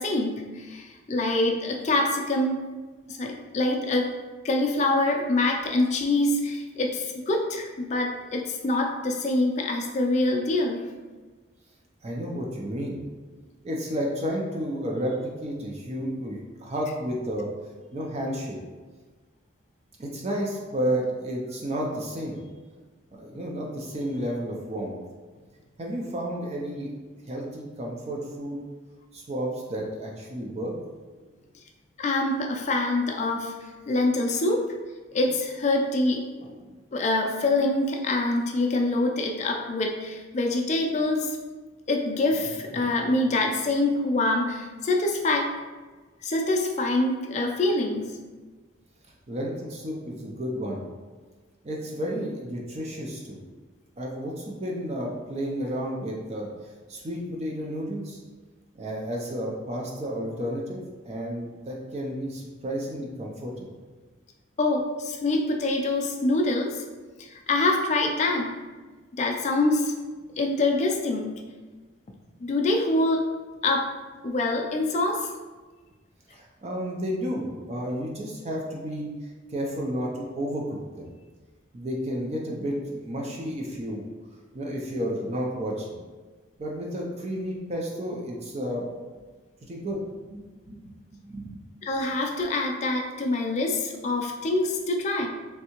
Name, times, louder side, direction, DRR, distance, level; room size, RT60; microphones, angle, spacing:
voice 1, 0.0-2.6 3.1-4.1 4.4-10.8 32.0-33.5 33.9-34.7 35.1-36.6 36.9-41.3 41.9-45.5 46.2-48.1 64.6-66.8 67.2-68.5 69.2-69.9 70.4-71.4 72.4-73.3 73.6-74.0 74.2-75.3 91.8-95.3, left 2 dB, 35° left, 2 dB, 0.4 m, -25 dB
voice 2, 12.0-13.0 13.6-17.5 17.9-18.6 20.0-22.4 23.1-24.9 25.8-26.9 27.3-28.6 29.1-30.7 49.3-50.8 51.6-53.4 54.0-56.5 56.9-58.2 58.7-63.6 76.3-79.1 79.5-81.1 81.7-84.0 84.5-86.0 86.6-88.8 89.6-90.9 91.3-91.6, equal, 30° right, -2 dB, 0.4 m, -31 dB
3.3 x 2.7 x 2.9 m, 1.3 s
head